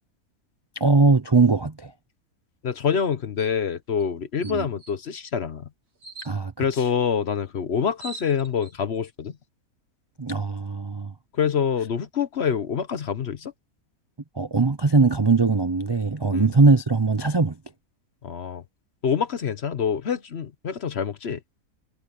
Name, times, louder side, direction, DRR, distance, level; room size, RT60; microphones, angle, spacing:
voice 1, 0.8-1.9 4.4-4.7 6.2-6.9 10.2-11.1 14.4-17.6, right 4 dB, 35° right, 0.4 m, -21 dB
voice 2, 2.6-5.7 6.6-9.3 11.3-13.5 16.3-16.5 18.2-18.6 19.0-21.4, left 7 dB, 50° left, 1.0 m, -26 dB
sound 1, 3.4-3.6 4.0-4.1 4.4-4.9 6.0-6.3 7.5-7.6 7.8-8.7, right 3 dB, 85° right, 3.8 m, -42 dB
omnidirectional pair, 1.6 m